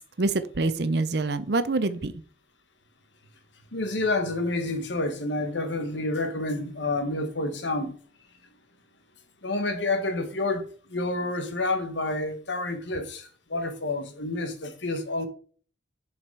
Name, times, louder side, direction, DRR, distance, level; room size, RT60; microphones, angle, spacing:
voice 1, 0.0-2.1, right 3 dB, 60° right, 0.7 m, -26 dB
voice 2, 3.7-7.9 9.4-15.3, left 2 dB, 75° left, 1.3 m, -29 dB
7.1 x 5.1 x 4.7 m
head